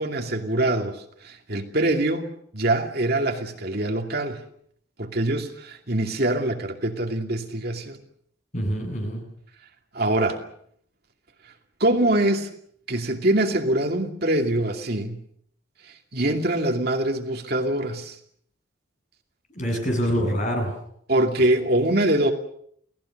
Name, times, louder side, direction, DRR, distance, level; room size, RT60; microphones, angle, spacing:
voice 1, 0.0-2.2 2.5-4.4 5.0-8.0 9.9-10.4 11.8-12.5 12.9-15.2 15.8-18.2 21.1-22.3, right 1 dB, 55° right, 4 dB, 2.5 m, -24 dB
voice 2, 8.5-9.2 19.5-20.7 21.4-21.5, equal, 40° left, 3 dB, 7.9 m, -25 dB
29.0 x 18.5 x 6.6 m, 0.67 s
head